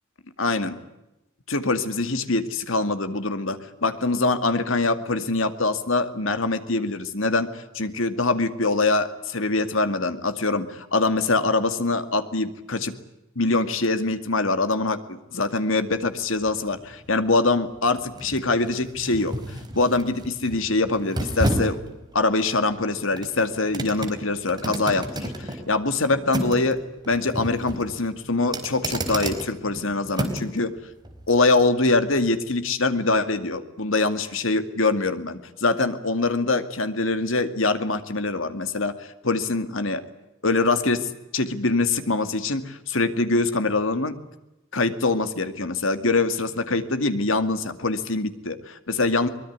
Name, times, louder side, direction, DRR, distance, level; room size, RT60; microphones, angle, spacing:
voice 1, 0.4-0.8 1.5-12.9 13.4-21.8 22.1-26.8 27.1-30.7 31.3-40.0 40.4-44.1 44.7-49.3, left 3 dB, 70° left, 9 dB, 2.2 m, -24 dB
sound 1, 15.9-30.6 31.0-31.2, right 1 dB, 20° right, 4.4 m, -32 dB
23.5 x 21.5 x 9.6 m, 0.93 s
head